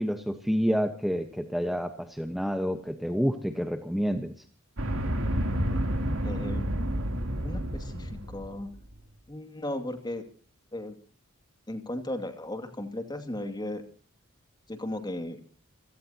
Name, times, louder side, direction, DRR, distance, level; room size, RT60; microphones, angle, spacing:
voice 1, 0.0-4.3, equal, ahead, 6 dB, 1.1 m, -28 dB
sound 1, 4.8-8.7, equal, 80° right, 3.1 m, -30 dB
voice 2, 6.2-6.6 7.4-8.7 9.3-10.2 10.7-10.9 11.7-13.8 14.7-15.4, left 1 dB, 20° left, 7 dB, 2.4 m, -35 dB
28.0 x 17.5 x 2.9 m, 0.41 s
head